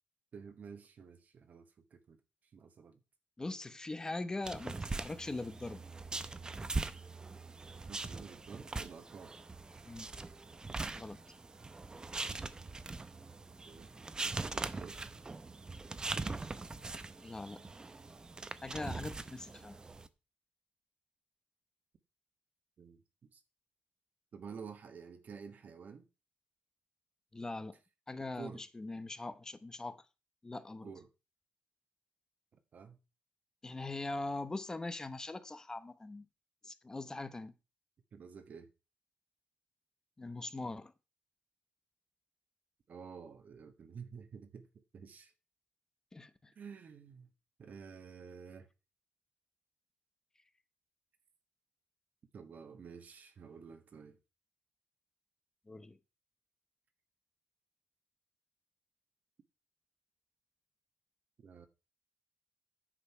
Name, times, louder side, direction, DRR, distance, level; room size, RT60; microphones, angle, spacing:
voice 1, 0.3-2.2 2.5-3.0 7.8-9.3 13.7-13.9 14.2-15.0 16.8-16.9 22.8-23.4 24.3-26.1 28.3-28.6 30.8-31.1 32.7-33.0 38.1-38.7 42.9-44.7 44.9-45.3 46.6-47.3 47.6-48.7 52.3-54.2 61.4-61.7, right 6 dB, 50° right, 1.3 m, -50 dB
voice 2, 3.4-5.8 9.8-10.1 10.9-11.2 17.2-17.6 18.6-19.8 27.3-27.8 28.1-30.1 30.4-30.9 33.6-36.2 36.6-37.5 40.2-40.9 46.1-46.5 55.7-56.0, left 2 dB, 20° left, 0.9 m, -41 dB
sound 1, 4.4-20.1, right 3 dB, 20° right, 0.7 m, -42 dB
10.0 x 6.8 x 5.6 m
cardioid pair, 120°, 4 cm